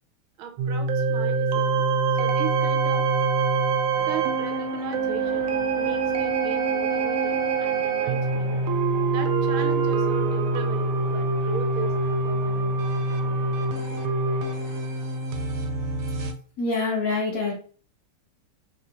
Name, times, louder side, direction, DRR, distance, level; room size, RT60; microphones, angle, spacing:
voice 1, 0.4-1.8 2.1-3.1 4.1-8.6 9.1-11.9 12.2-12.7, right 7 dB, 75° right, 5 dB, 1.4 m, -38 dB
sound 1, 0.6-16.3, right 4 dB, 90° right, 1.5 m, -25 dB
Church bell, 3.9-16.2, right 1 dB, 30° left, 0.5 m, -43 dB
voice 2, 16.6-17.5, left 3 dB, 85° left, -3 dB, 0.7 m, -25 dB
4.7 x 2.1 x 2.8 m, 0.43 s
omnidirectional pair, 2.4 m